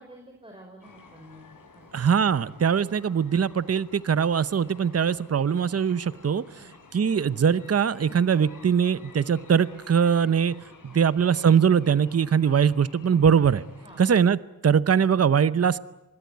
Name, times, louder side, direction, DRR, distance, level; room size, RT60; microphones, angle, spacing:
voice 1, 0.0-1.4 1.7-2.1 2.3-2.5 6.6-6.7 10.9-11.0 13.8-14.0, right 1 dB, 15° right, 2 dB, 5.6 m, -49 dB
sound 1, 0.8-14.1, left 3 dB, 65° left, 6.3 m, -52 dB
voice 2, 1.9-6.4 6.9-10.5 10.9-13.6 14.0-14.4 14.6-15.8, right 7 dB, 45° right, 15 dB, 0.8 m, -21 dB
24.5 x 22.0 x 9.5 m, 0.96 s
cardioid pair, 80°, 35 cm